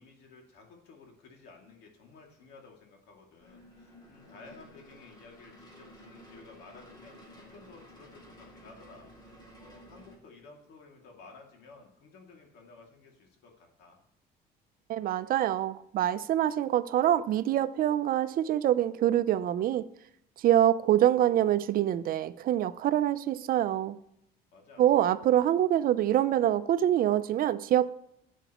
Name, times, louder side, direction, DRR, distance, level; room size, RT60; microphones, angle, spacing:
voice 1, 0.0-14.0 24.5-24.9, left 4 dB, 80° left, 2.5 m, -54 dB
sound 1, 3.4-10.2, equal, 25° left, 2.4 m, -53 dB
voice 2, 14.9-19.9 20.4-24.0 24.8-27.9, right 12 dB, 60° right, 0.5 m, -25 dB
12.0 x 8.1 x 3.0 m
cardioid pair, 110°, 17 cm